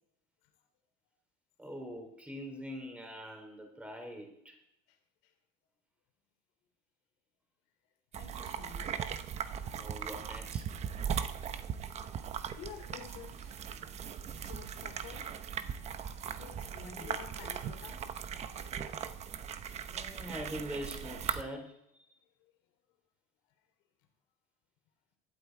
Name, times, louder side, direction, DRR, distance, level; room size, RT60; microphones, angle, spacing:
voice 1, 1.6-4.6 9.8-10.6 16.8-17.2 19.9-22.0, equal, 5° right, 3.5 m, -43 dB
sound 1, 8.1-21.4, right 8 dB, 35° right, 0.9 m, -39 dB
voice 2, 8.2-9.1 12.5-13.7 14.3-15.4 16.4-18.1 22.4-22.5, left 9 dB, 85° left, 3.5 m, -50 dB
19.5 x 12.5 x 4.7 m
cardioid pair, 165°, 20 cm